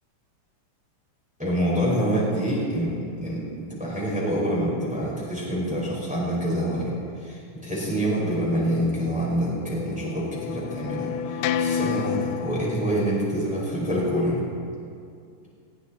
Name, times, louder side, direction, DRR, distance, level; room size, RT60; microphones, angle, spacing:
voice 1, 1.4-6.9 7.2-14.4, equal, ahead, -6 dB, 4.2 m, -26 dB
sound 1, 9.2-12.8, left 9 dB, 85° left, 2.2 m, -29 dB
20.5 x 15.0 x 4.2 m, 2.3 s
omnidirectional pair, 3.6 m